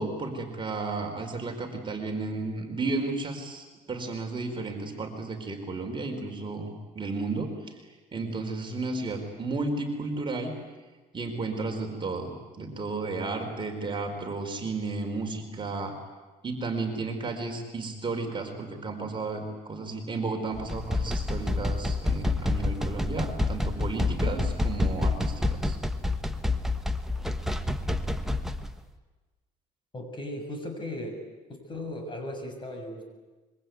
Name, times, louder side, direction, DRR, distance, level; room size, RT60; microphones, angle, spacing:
voice 1, 0.0-7.8 8.1-10.5 11.1-15.9 16.4-25.8, right 3 dB, 30° right, 2 dB, 4.6 m, -33 dB
sound 1, 20.5-28.7, left 2 dB, ahead, 1.4 m, -28 dB
voice 2, 29.9-31.2 31.5-33.0, left 1 dB, 30° left, 4 dB, 6.9 m, -37 dB
25.5 x 23.5 x 9.5 m, 1.2 s
cardioid pair, 110°, 17 cm